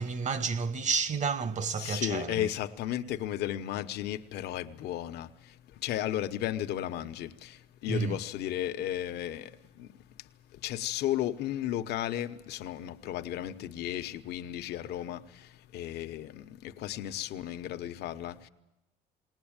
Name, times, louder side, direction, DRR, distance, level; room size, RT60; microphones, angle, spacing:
voice 1, 0.0-2.5 7.9-8.2, right 5 dB, 45° right, 1.3 m, -30 dB
voice 2, 1.8-9.9 10.2-18.5, left 12 dB, 75° left, 1.1 m, -34 dB
20.5 x 19.5 x 8.9 m
cardioid pair, 110°, 17 cm